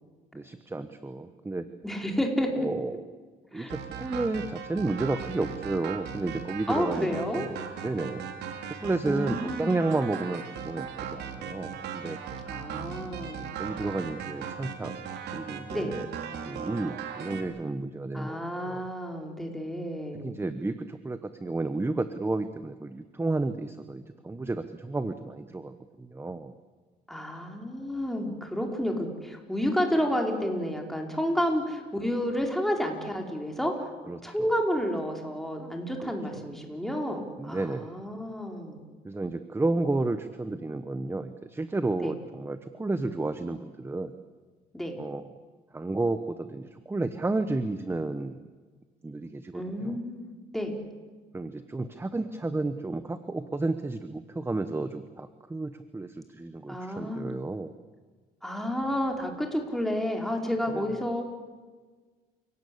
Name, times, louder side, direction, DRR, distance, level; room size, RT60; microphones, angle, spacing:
voice 1, 0.3-1.7 2.5-3.1 3.5-7.5 7.8-8.3 8.7-12.2 13.6-15.0 15.3-16.1 16.5-18.8 20.2-26.5 34.1-34.5 36.0-36.5 37.4-37.9 39.0-44.1 45.0-45.3 45.7-48.4 49.0-50.0 51.3-57.8 60.7-60.9, right 2 dB, 15° right, 10 dB, 1.2 m, -32 dB
voice 2, 1.8-2.7 3.5-3.7 6.7-7.5 9.0-9.7 12.5-13.6 15.7-15.9 18.1-20.3 27.1-33.9 34.2-38.8 42.0-42.1 44.7-44.9 49.5-50.8 56.7-57.3 58.4-61.2, equal, ahead, 2 dB, 4.9 m, -30 dB
sound 1, 3.7-17.4, right 7 dB, 75° right, 3.5 m, -38 dB
29.5 x 18.0 x 8.7 m, 1.4 s
cardioid pair, 110°, 17 cm